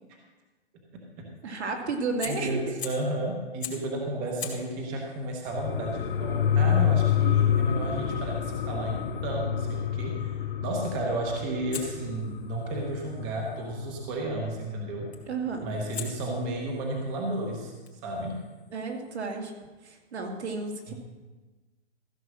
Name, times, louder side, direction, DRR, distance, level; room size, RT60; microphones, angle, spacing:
voice 1, 1.4-2.8 7.2-7.3 15.3-15.7 18.7-19.5 19.8-20.9, right 4 dB, 75° right, 2 dB, 2.4 m, -32 dB
Fire, 2.2-3.1 3.6-3.9 4.3-9.3 11.7-13.8 15.1-15.4 15.9-19.4, left 7 dB, 70° left, 2.5 m, -45 dB
voice 2, 2.2-15.1 15.6-18.4 20.9-21.0, right 1 dB, 15° right, 0 dB, 0.8 m, -33 dB
sound 1, 5.5-14.6 14.9-15.0, left 9 dB, 50° left, 0.7 m, -28 dB
14.5 x 6.0 x 6.3 m, 1.2 s
hypercardioid pair, 170°, 34 cm